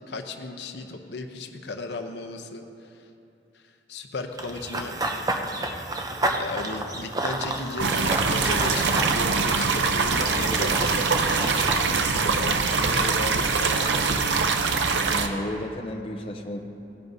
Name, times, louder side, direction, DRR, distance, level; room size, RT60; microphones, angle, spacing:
voice 1, 0.1-2.6 2.9-3.0 3.5-3.6 3.9-4.9 6.4-14.3, left 3 dB, 70° left, 5 dB, 0.7 m, -35 dB
Run / Bird vocalization bird call bird song, 4.4-11.8, right 1 dB, 20° right, 0.6 m, -30 dB
sound 1, 7.8-15.3, right 4 dB, 80° right, 0.7 m, -23 dB
voice 2, 15.0-16.6, left 1 dB, 30° left, 3 dB, 0.6 m, -33 dB
18.0 x 10.5 x 2.7 m, 2.8 s
head